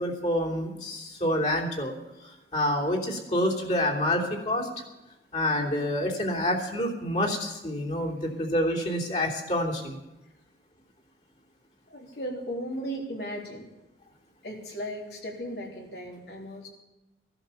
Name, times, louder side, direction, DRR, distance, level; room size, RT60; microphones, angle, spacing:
voice 1, 0.0-1.9 2.2-4.7 5.3-10.0, left 1 dB, 40° left, -1 dB, 3.1 m, -27 dB
voice 2, 11.9-13.7 14.4-16.7, equal, 65° left, 0 dB, 3.6 m, -36 dB
17.5 x 11.5 x 7.0 m, 1.0 s
head